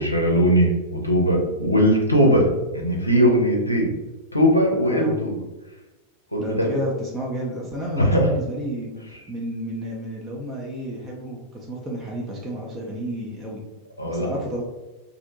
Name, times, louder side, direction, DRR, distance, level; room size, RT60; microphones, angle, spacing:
voice 1, 0.0-2.5 2.7-3.9 4.3-5.4 6.3-6.7 7.9-8.3 14.0-14.3, equal, 85° left, 0 dB, 0.5 m, -19 dB
voice 2, 4.8-5.2 6.4-9.0 9.3-13.6 14.1-14.6, equal, 20° right, -3 dB, 0.5 m, -31 dB
2.6 x 2.1 x 2.6 m, 1.1 s
figure-of-eight pair, 90°, 0 cm